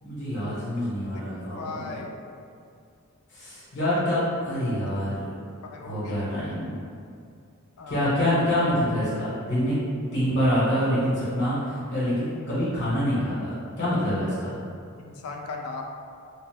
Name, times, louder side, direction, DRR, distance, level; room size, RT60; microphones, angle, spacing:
voice 1, 0.0-2.0 3.3-5.3 5.8-6.7 7.9-9.8 10.1-14.5, equal, 55° left, -10 dB, 0.8 m, -26 dB
voice 2, 1.6-2.1 5.6-6.6 7.8-8.2 15.0-15.8, left 4 dB, 80° left, 2 dB, 0.4 m, -38 dB
2.9 x 2.0 x 3.3 m, 2.3 s
head